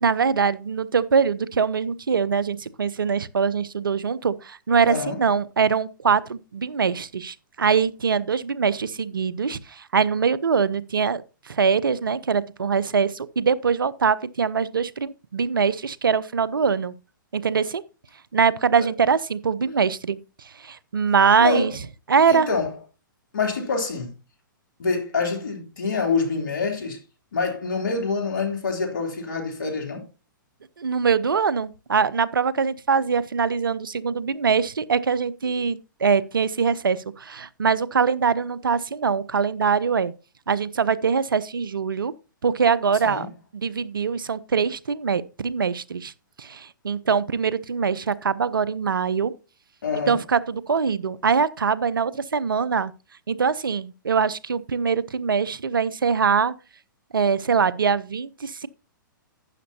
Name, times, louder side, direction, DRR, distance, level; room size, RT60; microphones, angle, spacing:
voice 1, 0.0-16.9 17.3-17.8 18.3-21.7 22.1-22.5 30.8-40.1 40.5-42.1 42.4-46.1 46.4-49.3 50.1-52.9 53.3-56.5 57.1-58.7, right 6 dB, 85° right, 0.7 m, -23 dB
voice 2, 4.9-5.2 18.7-18.9 21.4-21.7 22.3-22.7 23.3-24.1 24.8-27.0 27.3-30.0 43.0-43.3 49.8-50.2, left 4 dB, 70° left, 3.2 m, -26 dB
12.0 x 9.7 x 2.8 m
hypercardioid pair, 125°, 11 cm